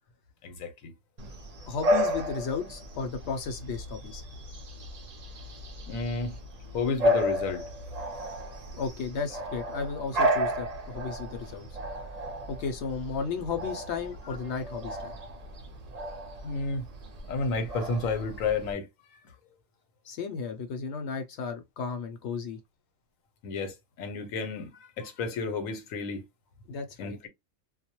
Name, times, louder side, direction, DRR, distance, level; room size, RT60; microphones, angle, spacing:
voice 1, 0.4-0.9 5.9-6.4 6.7-7.6 16.4-16.8 17.3-18.9 23.4-26.2 27.0-27.3, left 4 dB, 90° left, 1.1 m, -31 dB
Bark / Bird vocalization bird call bird song, 1.2-18.7, equal, 50° right, 0.5 m, -33 dB
voice 2, 1.7-4.2 8.7-11.7 12.5-15.2 20.0-22.6 26.7-27.2, left 5 dB, 65° left, 0.8 m, -34 dB
2.3 x 2.0 x 2.8 m
omnidirectional pair, 1.4 m